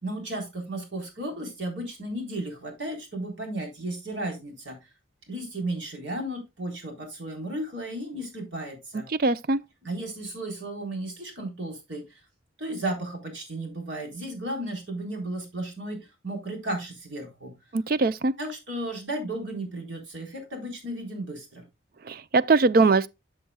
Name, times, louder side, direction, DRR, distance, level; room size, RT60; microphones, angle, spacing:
voice 1, 0.0-4.8 5.3-9.1 9.8-12.0 12.6-17.5 18.4-21.6, right 1 dB, 85° right, 3.8 m, -34 dB
voice 2, 9.1-9.6 17.7-18.3 22.0-23.1, right 3 dB, 50° right, 0.5 m, -21 dB
12.5 x 6.5 x 2.2 m
head